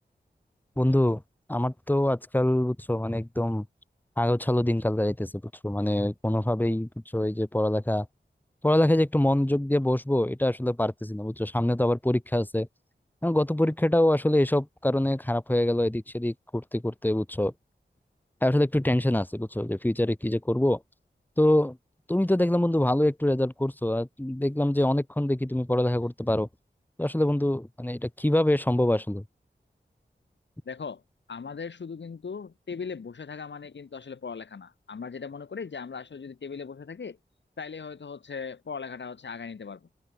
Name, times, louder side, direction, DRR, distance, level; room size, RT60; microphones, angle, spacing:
voice 1, 0.8-1.2 1.5-3.6 4.2-5.3 5.6-8.1 8.6-12.7 13.2-17.5 18.4-20.8 21.4-21.8 22.1-26.5 27.0-29.2, left 1 dB, 10° left, 1.8 m, -25 dB
voice 2, 30.7-31.0 31.3-37.2 37.6-39.9, left 5 dB, 90° left, 2.5 m, -38 dB
wide cardioid pair, 55°, 18 cm